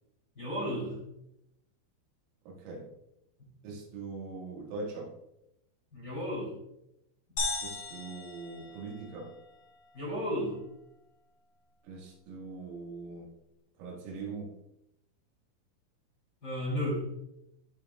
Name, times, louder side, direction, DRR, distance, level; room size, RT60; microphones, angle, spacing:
voice 1, 0.4-1.0 3.4-3.5 5.9-6.5 9.9-10.6 16.4-17.1, equal, 30° left, -5 dB, 2.2 m, -33 dB
voice 2, 2.5-2.9 3.6-5.2 7.6-9.4 11.8-13.3 13.8-14.5, right 3 dB, 80° right, -2 dB, 4.3 m, -41 dB
sound 1, 7.4-9.3, left 3 dB, 45° left, 2.9 m, -36 dB
14.5 x 5.9 x 2.3 m, 0.83 s
omnidirectional pair, 5.9 m